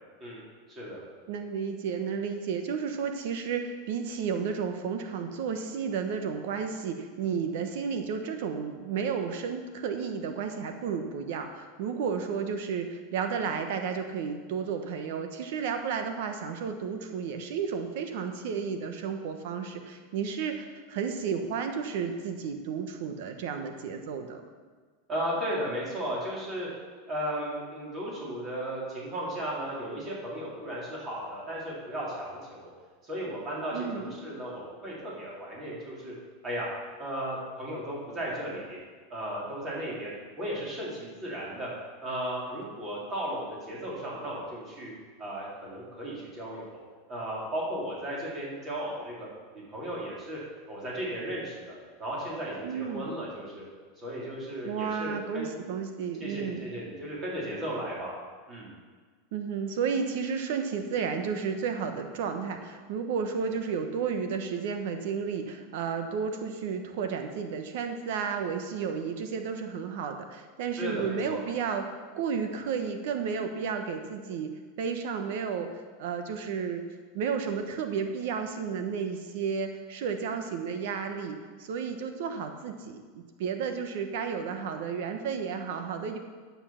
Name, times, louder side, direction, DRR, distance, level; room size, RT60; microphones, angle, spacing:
voice 1, 0.7-1.0 25.1-26.7 27.1-32.7 33.0-36.2 36.4-36.7 37.0-38.8 39.1-41.7 42.0-44.9 45.2-46.6 47.1-49.3 49.5-50.4 50.7-53.6 54.0-55.5 56.2-58.1 58.5-58.7 70.8-71.4, right 1 dB, 25° right, -5 dB, 3.7 m, -35 dB
voice 2, 1.3-24.4 33.7-34.1 52.6-53.1 54.6-56.7 59.3-71.9 72.1-74.5 74.8-76.8 77.1-86.2, right 6 dB, 65° right, 6 dB, 1.0 m, -32 dB
11.0 x 7.0 x 5.8 m, 1.5 s
supercardioid pair, 155°, 0 cm